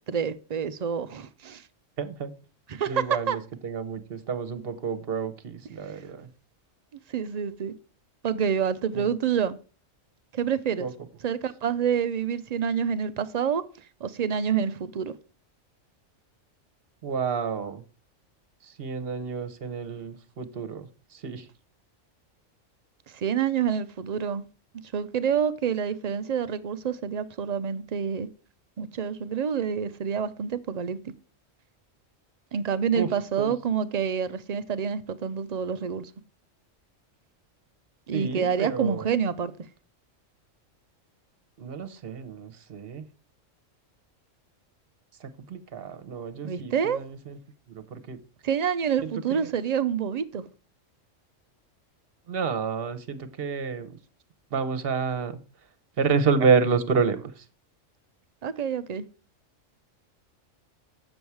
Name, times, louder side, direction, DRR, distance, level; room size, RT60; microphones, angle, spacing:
voice 1, 0.1-1.6 2.7-2.9 3.3-3.4 7.1-7.7 8.2-9.6 10.3-10.9 11.2-13.6 14.0-15.1 23.1-24.5 24.9-28.3 28.8-31.0 32.5-36.1 38.1-39.5 46.4-47.0 48.4-50.4 58.4-59.1, right 7 dB, 75° right, 0.3 m, -27 dB
voice 2, 2.0-2.4 2.9-6.3 8.9-9.2 10.8-11.1 17.0-17.8 18.6-21.5 32.9-33.5 38.1-39.1 41.6-43.1 45.2-47.4 47.7-48.2 49.0-49.5 52.3-54.0 54.5-55.7 56.0-57.5, right 5 dB, 50° right, 1.1 m, -29 dB
7.9 x 7.0 x 4.6 m
omnidirectional pair, 1.3 m